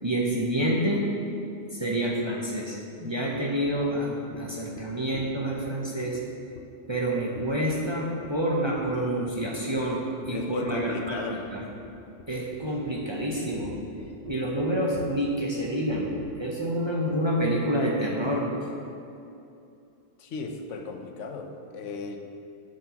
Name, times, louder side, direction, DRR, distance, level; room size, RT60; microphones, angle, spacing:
voice 1, 0.0-1.0 1.7-6.2 6.9-11.7 12.3-13.7 14.3-16.1 16.4-18.5, right 1 dB, 30° right, -3 dB, 0.6 m, -28 dB
sound 1, 3.4-3.5 3.7-3.9 4.3-4.4 4.8-4.9 5.1-5.7 6.1-6.2 6.6-6.7 6.9-7.0 7.4-7.9 8.2-8.5 8.8-9.0 9.3-9.5 9.8-10.0 10.2-16.3, left 6 dB, 65° left, 0.8 m, -45 dB
voice 2, 10.3-11.4 20.2-22.2, left 4 dB, 85° left, 4 dB, 1.0 m, -35 dB
7.9 x 7.4 x 2.9 m, 2.6 s
omnidirectional pair, 1.2 m